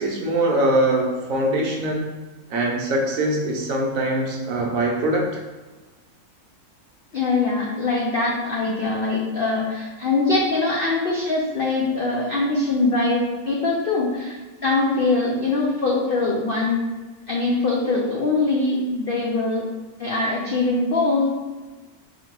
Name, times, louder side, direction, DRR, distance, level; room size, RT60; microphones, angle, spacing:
voice 1, 0.0-2.1 2.5-5.4, right 1 dB, 65° right, -1 dB, 1.0 m, -22 dB
voice 2, 7.1-14.4 14.6-16.8 17.3-19.7 20.0-21.3, left 3 dB, 85° left, -3 dB, 0.4 m, -22 dB
4.2 x 3.0 x 2.9 m, 1.2 s
omnidirectional pair, 1.7 m